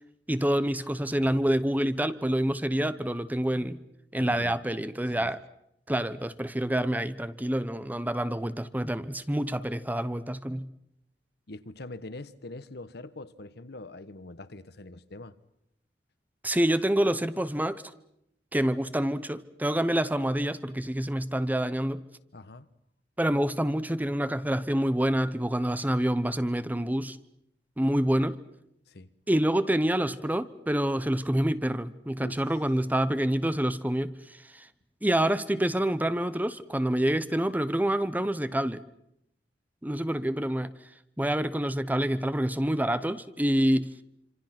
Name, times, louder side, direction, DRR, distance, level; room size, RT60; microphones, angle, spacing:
voice 1, 0.3-3.8 4.1-5.4 5.9-10.7 16.4-17.8 18.5-22.0 23.2-27.2 27.8-28.4 29.3-34.7 35.0-38.8 39.8-40.7 41.2-43.9, right 1 dB, 10° right, 0.9 m, -27 dB
voice 2, 4.1-4.6 5.2-5.3 11.5-15.4 22.3-22.7 28.9-29.1 32.2-32.4, left 2 dB, 65° left, 1.2 m, -43 dB
26.5 x 26.5 x 6.0 m
head